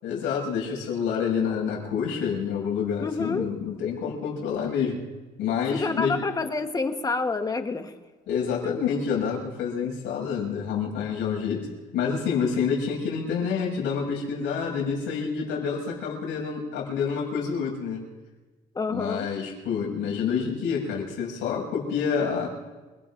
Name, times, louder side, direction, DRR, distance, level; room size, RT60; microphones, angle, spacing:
voice 1, 0.0-5.0 5.4-6.2 8.3-11.7 11.9-18.1 18.9-22.5, left 6 dB, 80° left, -1 dB, 7.0 m, -28 dB
voice 2, 3.0-3.5 5.7-8.0 8.6-8.7 18.7-19.2, left 3 dB, 20° left, 7 dB, 1.1 m, -28 dB
28.5 x 19.5 x 2.6 m, 1.3 s
cardioid pair, 130°, 19 cm